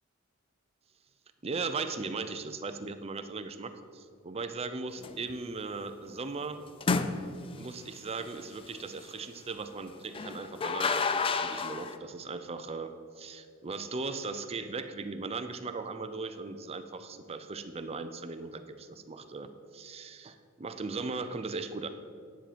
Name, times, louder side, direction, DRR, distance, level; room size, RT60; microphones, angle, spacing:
voice 1, 1.4-6.6 7.6-21.9, right 4 dB, 30° right, 9 dB, 0.5 m, -38 dB
sound 1, 5.0-5.3 6.8-7.6 10.1-12.0, left 4 dB, 25° left, 0.4 m, -30 dB
10.0 x 7.6 x 5.1 m, 2.2 s
head